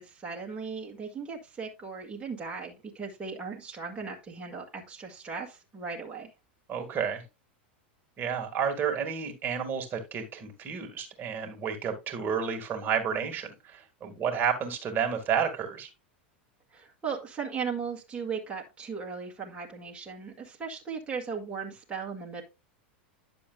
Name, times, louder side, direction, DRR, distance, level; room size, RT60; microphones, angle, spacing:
voice 1, 0.0-6.3 16.7-22.4, right 5 dB, 20° right, -1 dB, 1.9 m, -37 dB
voice 2, 6.7-7.2 8.2-15.9, right 7 dB, 35° right, 4 dB, 2.1 m, -31 dB
10.5 x 7.0 x 2.3 m, 0.25 s
hypercardioid pair, 110°, 6 cm